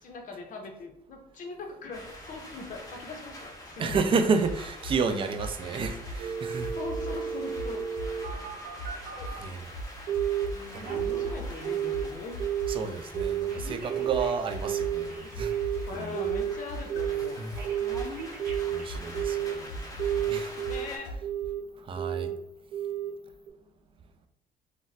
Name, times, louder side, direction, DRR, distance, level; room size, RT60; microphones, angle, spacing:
voice 1, 0.0-4.0 6.6-7.8 9.1-9.3 10.5-12.3 15.9-17.7 20.7-21.3, left 3 dB, 50° left, 0.7 m, -41 dB
sound 1, 1.9-21.0, left 1 dB, 20° left, 0.8 m, -46 dB
voice 2, 3.8-6.7 9.4-9.7 10.7-11.2 12.7-15.5 15.9-16.2 17.4-17.5 18.7-20.5 21.8-22.3, right 5 dB, 30° right, 0.3 m, -31 dB
sound 2, 3.9-4.2 4.4-6.3 6.6-8.5 8.8-10.7 11.0-15.1 15.3-21.2, equal, 90° left, 0.5 m, -38 dB
Telephone, 6.2-9.5 10.1-10.5 10.7-12.1 12.4-12.8 13.1-16.5 16.9-17.3 17.6-19.6 20.0-20.9 21.2-21.6 22.0-22.4 22.7-23.1 23.5-23.6, right 10 dB, 80° right, 0.8 m, -31 dB
2.4 x 2.1 x 3.9 m
cardioid pair, 110°, 17 cm